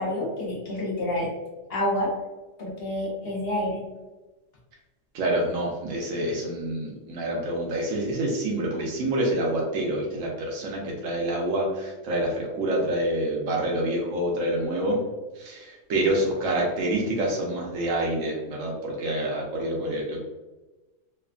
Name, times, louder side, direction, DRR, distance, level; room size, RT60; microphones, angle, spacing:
voice 1, 0.0-1.3 1.7-2.1 2.6-3.8, left 1 dB, 55° left, -3 dB, 0.9 m, -28 dB
voice 2, 5.1-15.0 15.3-20.2, right 1 dB, 80° right, -2 dB, 1.0 m, -27 dB
3.1 x 2.2 x 2.4 m, 1.1 s
omnidirectional pair, 1.3 m